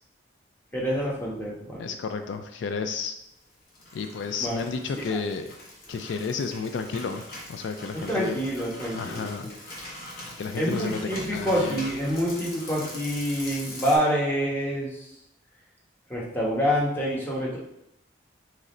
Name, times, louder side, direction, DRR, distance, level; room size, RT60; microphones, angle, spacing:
voice 1, 0.7-1.9 4.4-4.6 5.0-5.2 7.9-9.5 10.6-15.0 16.1-17.6, equal, 10° left, -5 dB, 1.0 m, -27 dB
voice 2, 1.8-3.1 3.9-5.5 5.9-7.2 7.5-8.3 8.9-9.5 10.4-11.8, left 5 dB, 80° left, 7 dB, 0.3 m, -31 dB
sound 1, 3.5-14.0, left 1 dB, 50° left, 1.1 m, -42 dB
3.7 x 3.2 x 4.1 m, 0.81 s
head